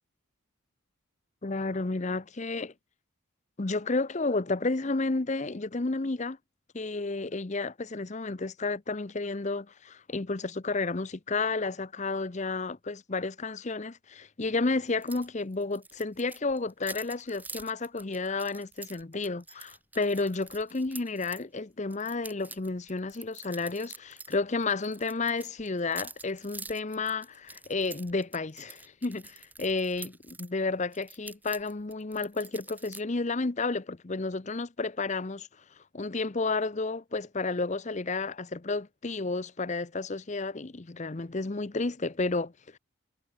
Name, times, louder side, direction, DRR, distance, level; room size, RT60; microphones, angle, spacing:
voice 1, 1.4-2.7 3.6-6.4 6.7-35.5 35.9-42.8, left 3 dB, 35° left, 0.7 m, -31 dB
sound 1, 15.0-15.3 15.5-21.4 21.9-24.4 24.6-30.5 30.9-33.0, right 3 dB, 10° right, 1.8 m, -46 dB
head